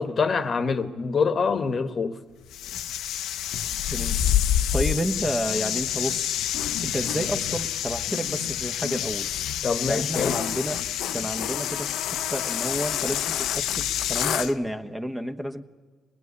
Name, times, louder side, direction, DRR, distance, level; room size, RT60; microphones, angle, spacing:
voice 1, 0.0-2.2 9.6-10.3, left 5 dB, 45° left, 1.2 m, -25 dB
sound 1, 2.5-14.5, left 10 dB, 85° left, 0.7 m, -27 dB
voice 2, 4.7-6.3 6.8-9.3 9.9-10.8 11.1-11.9 12.3-15.6, equal, 10° right, 1.2 m, -30 dB
25.0 x 20.0 x 9.7 m
cardioid pair, 90°, 0 cm